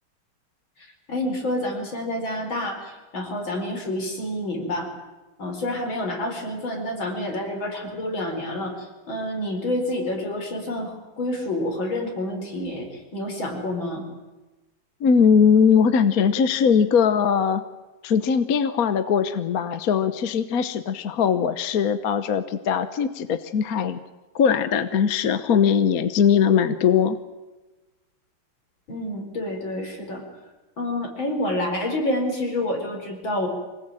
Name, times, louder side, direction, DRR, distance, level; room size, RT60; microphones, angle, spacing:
voice 1, 1.1-4.9 5.4-14.1 28.9-30.2 30.8-33.5, left 1 dB, 75° left, 2 dB, 5.4 m, -28 dB
voice 2, 15.0-17.6 18.0-24.0 24.3-27.2, left 7 dB, 55° left, 11 dB, 1.3 m, -20 dB
25.0 x 19.0 x 9.0 m, 1.1 s
omnidirectional pair, 2.2 m